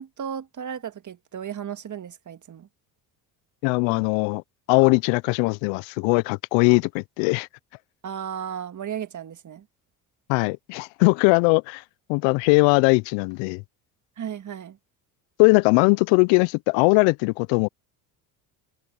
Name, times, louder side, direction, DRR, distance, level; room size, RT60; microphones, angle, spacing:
voice 1, 0.0-2.7 8.0-9.7 14.2-14.8, right 8 dB, 40° right, 1.9 m, -34 dB
voice 2, 3.6-4.4 4.7-7.5 10.3-11.8 12.1-13.6 15.4-17.7, left 30 dB, 75° left, 0.6 m, -20 dB
supercardioid pair, 70°, 45 cm